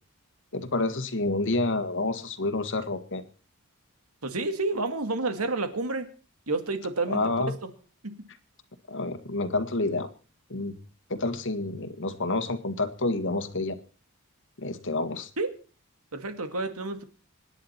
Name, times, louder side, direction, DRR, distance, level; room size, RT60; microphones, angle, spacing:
voice 1, 0.5-3.2 7.1-7.5 8.9-10.1 10.5-10.8 11.1-13.8 14.6-15.3, left 2 dB, 60° left, 10 dB, 1.8 m, -28 dB
voice 2, 4.2-6.1 6.5-7.2 8.0-8.3 15.4-15.5 16.1-17.0, right 3 dB, 75° right, 8 dB, 2.2 m, -29 dB
26.0 x 10.0 x 4.4 m, 0.37 s
head